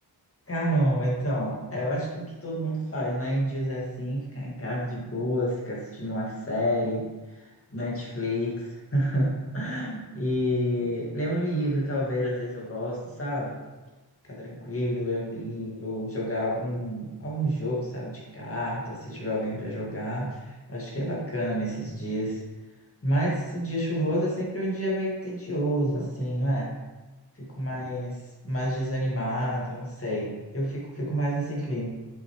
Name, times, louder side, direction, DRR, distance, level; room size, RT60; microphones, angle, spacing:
voice 1, 0.5-7.0 7.3-13.6 14.2-22.4 23.0-26.7 27.4-28.2 28.4-31.9, equal, 35° left, -5 dB, 2.0 m, -29 dB
6.9 x 6.0 x 3.2 m, 1.1 s
wide cardioid pair, 130°, 39 cm